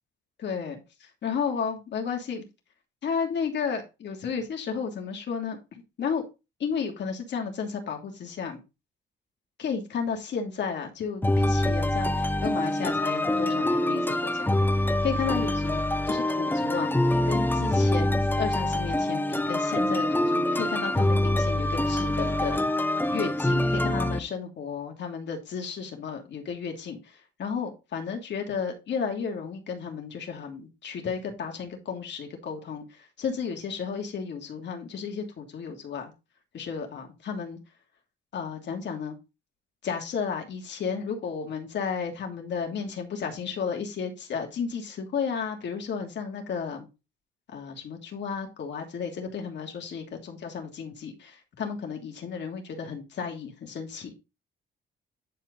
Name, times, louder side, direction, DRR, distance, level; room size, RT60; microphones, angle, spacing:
voice 1, 0.4-2.4 3.0-5.6 6.0-6.2 6.6-8.6 9.6-16.9 17.2-22.6 23.1-27.1 27.4-36.1 36.5-37.6 38.3-39.2 39.8-46.9 47.5-54.1, left 6 dB, 60° left, 2.9 m, -33 dB
sound 1, 11.2-24.2, left 1 dB, 10° left, 1.1 m, -25 dB
10.5 x 4.7 x 4.0 m
cardioid pair, 90°, 20 cm